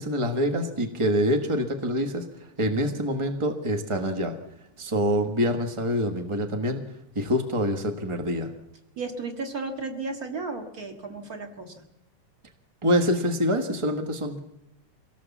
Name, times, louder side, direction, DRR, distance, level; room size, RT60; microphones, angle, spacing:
voice 1, 0.0-2.3 2.6-4.3 4.8-6.8 7.1-8.5 12.8-14.4, equal, 50° right, 4 dB, 0.3 m, -25 dB
voice 2, 9.0-11.9, right 3 dB, 30° right, 4 dB, 2.1 m, -34 dB
24.5 x 17.5 x 7.3 m, 0.85 s
omnidirectional pair, 3.6 m